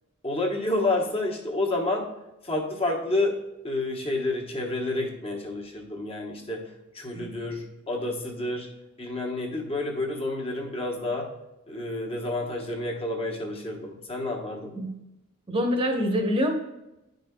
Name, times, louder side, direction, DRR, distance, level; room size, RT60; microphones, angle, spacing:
voice 1, 0.2-2.1 2.4-3.4 3.6-6.7 6.9-8.7 9.0-11.3 11.7-14.7, left 2 dB, 25° left, 1 dB, 1.0 m, -29 dB
voice 2, 15.5-16.6, equal, 25° right, 2 dB, 0.9 m, -25 dB
10.5 x 5.1 x 2.2 m, 0.95 s
head